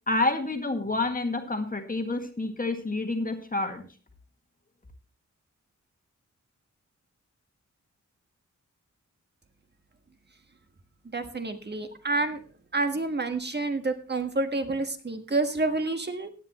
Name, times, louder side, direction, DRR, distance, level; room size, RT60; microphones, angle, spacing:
voice 1, 0.1-3.8, left 2 dB, 30° left, 5 dB, 1.8 m, -28 dB
voice 2, 11.1-12.4 12.7-16.3, right 3 dB, 35° right, 7 dB, 1.5 m, -28 dB
16.0 x 9.7 x 3.0 m, 0.37 s
wide cardioid pair, 95°, 30 cm